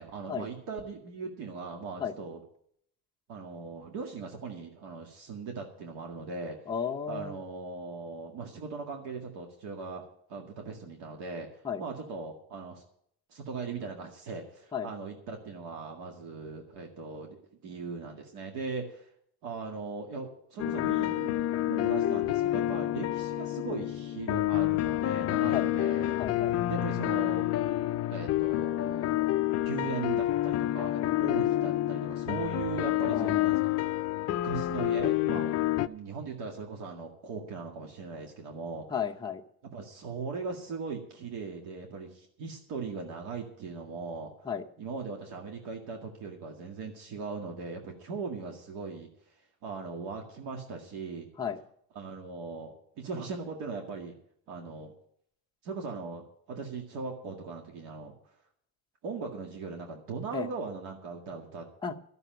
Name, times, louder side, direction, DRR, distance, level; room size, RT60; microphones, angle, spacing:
voice 1, 0.0-2.4 3.3-6.7 7.1-11.5 11.8-12.8 13.3-19.1 19.4-21.4 21.7-26.2 26.7-27.5 28.1-29.3 29.7-33.8 34.3-38.9 39.7-44.3 44.8-49.3 49.6-51.3 51.9-54.1 54.5-54.9 55.6-56.2 56.5-58.1 59.0-61.7, right 4 dB, 85° right, 2 dB, 2.1 m, -39 dB
voice 2, 6.7-7.4 11.6-11.8 14.7-14.9 25.5-25.7 26.2-26.6 33.1-33.5 38.9-39.4 44.5-44.6 51.4-51.6 60.3-60.5 61.8-61.9, left 7 dB, 10° left, 1 dB, 0.7 m, -33 dB
sound 1, 20.6-35.9, left 15 dB, 40° left, 0.4 m, -28 dB
13.0 x 6.9 x 9.2 m, 0.68 s
cardioid pair, 180°, 39 cm